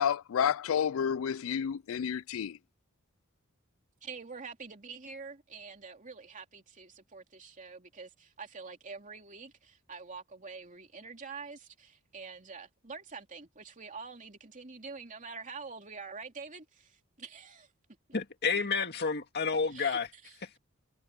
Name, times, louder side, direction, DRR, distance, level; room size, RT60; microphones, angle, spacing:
voice 1, 0.0-2.6, left 8 dB, 70° left, 0.4 m, -30 dB
voice 2, 4.0-17.7 19.7-20.6, right 5 dB, 40° right, 3.0 m, -46 dB
voice 3, 18.1-20.1, left 5 dB, 55° left, 2.0 m, -30 dB
head